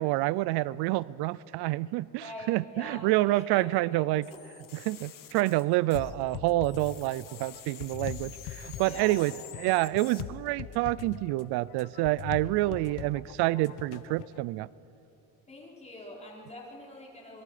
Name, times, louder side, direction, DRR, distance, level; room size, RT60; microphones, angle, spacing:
voice 1, 0.0-4.3 4.7-9.3 9.6-14.7, right 18 dB, 90° right, 21 dB, 0.5 m, -28 dB
voice 2, 2.2-4.0 4.3-4.7 8.8-9.3 12.6-13.0 15.5-17.4, left 1 dB, 15° left, -3 dB, 4.8 m, -45 dB
sound 1, 4.2-6.4 6.6-10.2, left 11 dB, 60° left, 1.5 m, -48 dB
sound 2, 5.9-14.4, left 10 dB, 80° left, 0.9 m, -42 dB
26.5 x 22.0 x 5.0 m, 2.8 s
cardioid pair, 125°, 38 cm